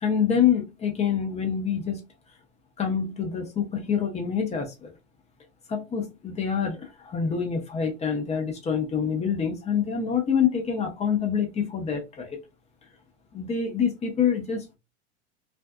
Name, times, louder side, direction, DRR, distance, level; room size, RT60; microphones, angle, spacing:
voice 1, 0.0-2.0 2.8-4.9 5.7-12.4 13.3-14.7, left 7 dB, 20° left, 0.7 m, -26 dB
2.5 x 2.3 x 2.2 m
hypercardioid pair, 110°, 35 cm